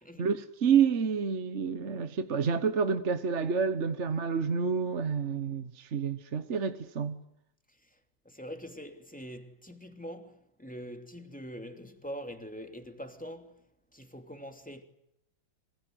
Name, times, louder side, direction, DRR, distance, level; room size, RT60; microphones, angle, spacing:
voice 1, 0.2-7.2, right 6 dB, 40° right, 1.3 m, -29 dB
voice 2, 8.2-13.6 13.9-14.8, equal, 5° left, 2.8 m, -44 dB
27.0 x 25.5 x 7.9 m
omnidirectional pair, 2.2 m